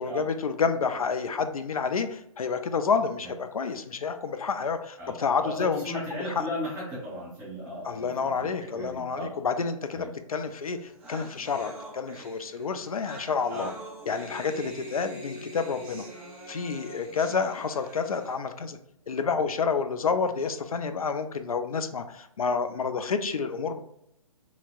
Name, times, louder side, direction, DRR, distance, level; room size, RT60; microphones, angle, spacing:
voice 1, 0.0-6.4 7.8-13.7 14.1-16.1 16.5-18.8 19.1-23.8, left 5 dB, 70° left, 9 dB, 0.4 m, -29 dB
voice 2, 5.4-9.3 9.9-10.1 13.5-13.7, left 1 dB, 25° right, -8 dB, 1.3 m, -36 dB
sound 1, 10.5-10.6 10.7-18.3, right 1 dB, 5° right, 0.4 m, -44 dB
2.9 x 2.7 x 2.3 m, 0.77 s
figure-of-eight pair, 125°, 19 cm